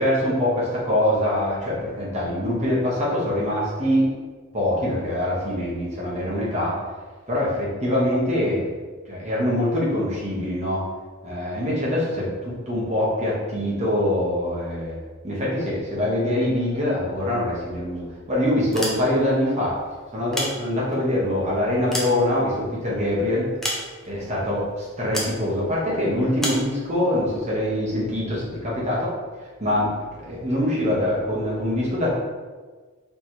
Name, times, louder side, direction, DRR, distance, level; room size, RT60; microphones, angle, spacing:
voice 1, 0.0-4.1 4.5-6.8 7.3-8.7 9.1-10.8 11.2-14.9 15.2-19.7 20.1-23.5 24.0-29.1 29.6-29.9 30.2-32.1, left 1 dB, 30° right, -6 dB, 1.3 m, -24 dB
sound 1, 18.6-19.4 20.1-21.1 21.6-22.8 23.6-24.3 25.1-25.4 26.4-26.7, equal, ahead, 0.6 m, -30 dB
3.4 x 3.2 x 4.4 m, 1.4 s
head